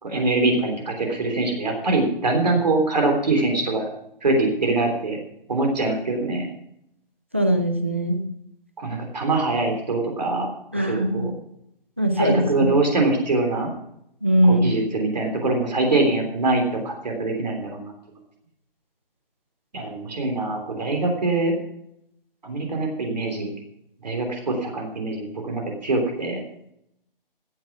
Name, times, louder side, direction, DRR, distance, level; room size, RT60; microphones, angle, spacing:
voice 1, 0.0-3.9 4.2-5.2 5.5-6.5 8.8-11.3 12.2-13.7 14.4-17.9 19.7-21.5 22.4-23.5 24.0-26.4, right 2 dB, 45° right, 2 dB, 3.4 m, -23 dB
voice 2, 7.3-8.2 10.7-11.3 12.0-12.4 14.2-14.7, right 1 dB, 15° right, 6 dB, 0.6 m, -20 dB
15.0 x 8.9 x 6.0 m, 0.76 s
hypercardioid pair, 175°, 29 cm